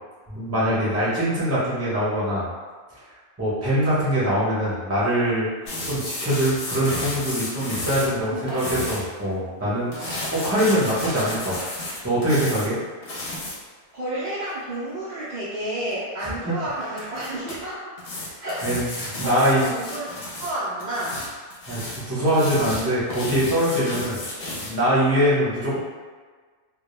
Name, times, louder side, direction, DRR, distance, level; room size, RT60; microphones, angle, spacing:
voice 1, 0.3-2.5 3.4-11.7 12.0-12.8 16.2-16.5 18.6-19.6 21.7-24.2 24.7-25.8, equal, 15° right, -9 dB, 0.5 m, -23 dB
sound 1, 5.7-9.0 9.9-12.7 13.0-13.5 15.9-16.0 17.0-17.6 18.0-20.5 20.8-24.8, left 1 dB, 55° left, 0.7 m, -32 dB
voice 2, 8.3-8.6 10.0-10.4 13.9-17.8 18.4-21.2, right 1 dB, 80° right, -9 dB, 0.4 m, -31 dB
2.2 x 2.1 x 3.0 m, 1.5 s
omnidirectional pair, 1.3 m